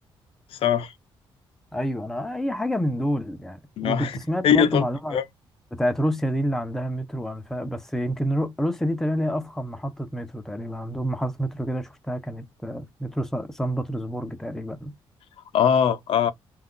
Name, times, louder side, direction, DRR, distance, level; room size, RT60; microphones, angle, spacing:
voice 1, 0.5-0.9 3.8-4.2 4.4-4.8 5.1-5.2 15.5-16.3, left 8 dB, 70° left, 0.5 m, -21 dB
voice 2, 1.7-5.2 5.7-14.9, equal, 5° left, 0.4 m, -28 dB
2.3 x 2.2 x 3.6 m
cardioid pair, 135°, 10 cm